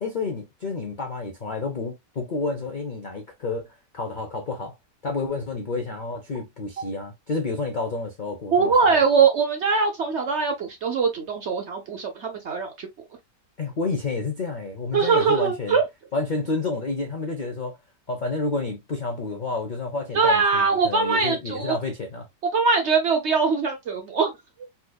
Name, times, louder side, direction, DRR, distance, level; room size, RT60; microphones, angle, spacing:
voice 1, 0.0-3.7 3.9-4.7 5.0-9.0 13.6-15.8 16.1-17.8 18.1-22.3, left 3 dB, 70° left, 0.4 m, -30 dB
voice 2, 8.5-12.9 14.9-15.9 20.1-21.8 22.5-24.3, right 5 dB, 55° right, 0.8 m, -22 dB
4.2 x 2.5 x 2.2 m
omnidirectional pair, 1.8 m